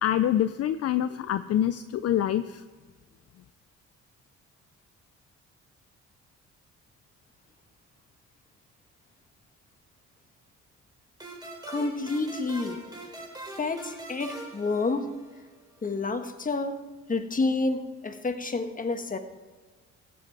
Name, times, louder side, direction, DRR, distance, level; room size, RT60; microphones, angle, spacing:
voice 1, 0.0-2.6, left 11 dB, 55° left, 12 dB, 0.5 m, -26 dB
sound 1, 11.2-15.6, right 2 dB, 15° right, 3.6 m, -43 dB
voice 2, 11.7-12.8 13.6-15.1 15.8-16.8 17.1-19.2, left 3 dB, 25° left, 7 dB, 1.4 m, -29 dB
15.0 x 9.2 x 4.7 m, 1.4 s
cardioid pair, 90°, 30 cm